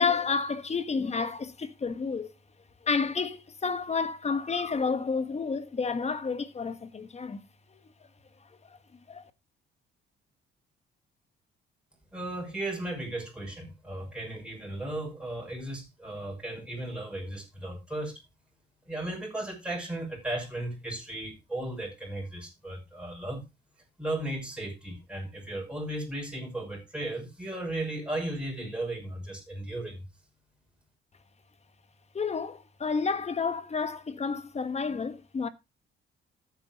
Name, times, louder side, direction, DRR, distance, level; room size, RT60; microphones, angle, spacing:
voice 1, 0.0-2.3 2.8-7.4 9.1-9.2 32.1-35.5, left 5 dB, 35° left, 1.3 m, -30 dB
voice 2, 12.1-18.2 18.9-23.4 24.0-30.0, right 1 dB, 5° right, 5.9 m, -35 dB
14.0 x 8.6 x 2.9 m
cardioid pair, 90°, 20 cm